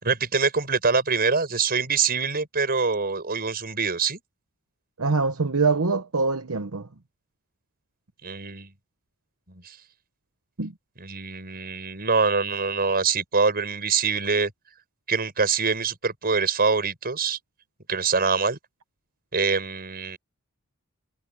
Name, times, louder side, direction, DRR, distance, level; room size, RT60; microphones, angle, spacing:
voice 1, 0.0-4.2 8.2-8.7 9.5-9.8 11.0-14.5 15.1-17.4 17.9-18.6 19.3-20.2, right 5 dB, 45° right, 5.9 m, -24 dB
voice 2, 5.0-6.9 10.6-10.7, right 4 dB, 70° right, 1.1 m, -24 dB
head